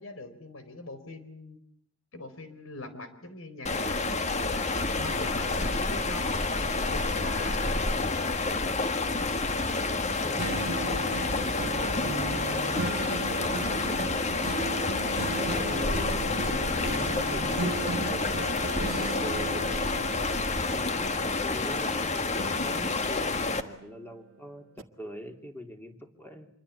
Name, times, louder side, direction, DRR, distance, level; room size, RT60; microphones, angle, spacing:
voice 1, 0.0-1.6 2.1-4.2 4.5-4.7 4.9-6.4 6.7-7.9 9.6-9.9 10.4-11.1 13.4-13.7, left 2 dB, 80° left, 10 dB, 4.2 m, -43 dB
sound 1, 3.7-23.6, left 3 dB, 35° left, 1.7 m, -29 dB
voice 2, 10.2-10.6 13.4-14.7 15.3-16.6 16.9-20.1 20.7-26.5, equal, 10° left, 5 dB, 3.2 m, -44 dB
sound 2, 10.4-22.0 22.4-24.3 24.8-24.9, right 2 dB, 80° right, 1.6 m, -37 dB
26.5 x 23.0 x 8.4 m, 0.70 s
head